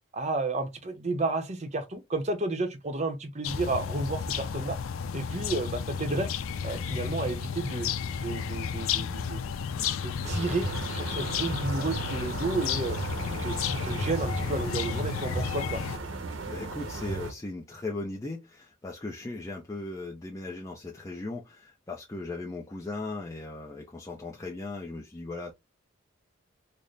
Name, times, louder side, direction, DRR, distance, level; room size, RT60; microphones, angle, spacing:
voice 1, 0.1-4.8 5.1-6.3 6.6-7.9 8.1-9.4 9.9-13.0 13.4-15.8, right 2 dB, 35° right, 0.7 m, -32 dB
sound 1, 3.4-16.0, left 7 dB, 90° left, 0.4 m, -33 dB
sound 2, 10.2-17.3, right 3 dB, 75° right, 0.9 m, -35 dB
voice 2, 16.5-25.5, left 2 dB, 15° left, 0.5 m, -38 dB
4.0 x 2.1 x 3.2 m
head